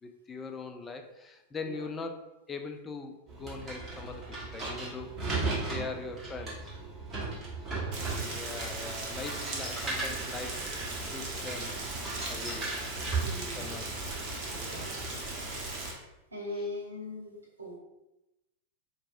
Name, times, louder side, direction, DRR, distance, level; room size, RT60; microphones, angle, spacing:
voice 1, 0.0-2.2 2.5-5.2 5.7-6.7 7.7-10.6 11.1-11.8 12.3-12.7 13.6-14.0 14.6-14.9, left 4 dB, 20° left, 5 dB, 0.4 m, -41 dB
sound 1, 3.3-14.9, right 3 dB, 20° right, 1.4 m, -37 dB
voice 2, 5.1-5.7 7.7-8.1 13.2-13.8 14.5-15.0 16.3-17.8, left 1 dB, 80° right, -1 dB, 0.8 m, -42 dB
Rain, 7.9-15.9, right 2 dB, 40° right, 0.9 m, -38 dB
4.5 x 2.6 x 2.5 m, 0.95 s
figure-of-eight pair, 90°, 0 cm